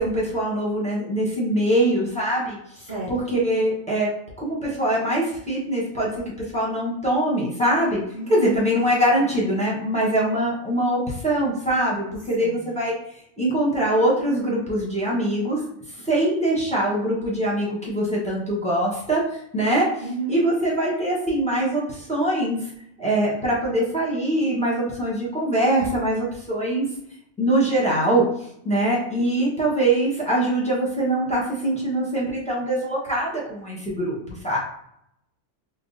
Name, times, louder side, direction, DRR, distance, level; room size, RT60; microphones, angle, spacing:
voice 1, 0.0-2.6 3.1-4.1 4.4-6.1 6.5-8.0 8.3-12.9 13.4-15.6 16.0-19.9 20.3-22.7 23.0-26.9 27.4-34.6, right 1 dB, 5° left, -7 dB, 0.8 m, -23 dB
voice 2, 8.2-8.5 12.4-12.7 20.0-20.4, right 3 dB, 35° right, -6 dB, 0.5 m, -32 dB
5.5 x 2.0 x 2.6 m, 0.73 s
omnidirectional pair, 1.4 m